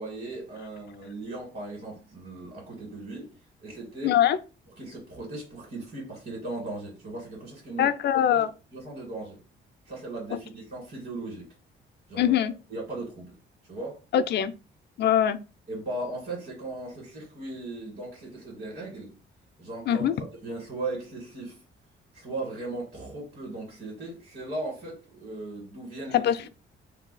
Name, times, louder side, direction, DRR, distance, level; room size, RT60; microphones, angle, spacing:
voice 1, 0.0-3.3 3.6-4.1 4.8-7.9 8.1-9.4 9.8-11.5 12.1-12.4 12.7-13.3 13.7-14.0 15.7-19.1 19.6-20.1 20.4-21.6 22.1-26.2, right 2 dB, 50° right, 1.6 m, -37 dB
voice 2, 4.0-4.4 7.8-8.5 12.2-12.5 14.1-14.5 15.0-15.4 19.9-20.1 26.1-26.5, left 10 dB, 60° left, 0.4 m, -22 dB
2.7 x 2.3 x 3.9 m
cardioid pair, 90°, 20 cm